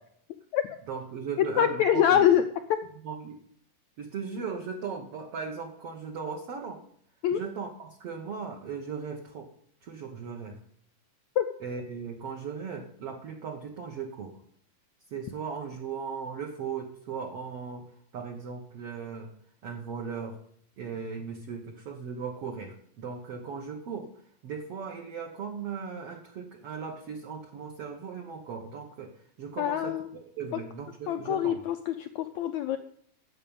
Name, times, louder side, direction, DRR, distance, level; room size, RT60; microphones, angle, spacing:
voice 1, 0.9-2.2 3.0-3.4 4.0-6.8 7.3-9.5 9.8-10.6 11.6-14.4 15.1-17.9 18.1-19.3 19.6-20.4 20.8-24.1 24.4-29.1 29.4-31.6, right 6 dB, 55° right, 1 dB, 1.8 m, -37 dB
voice 2, 1.4-2.4 7.2-7.4 11.4-11.5 29.6-30.1 30.5-30.6 31.1-32.8, left 10 dB, 85° left, 8 dB, 1.6 m, -24 dB
10.5 x 7.9 x 8.9 m, 0.65 s
omnidirectional pair, 4.1 m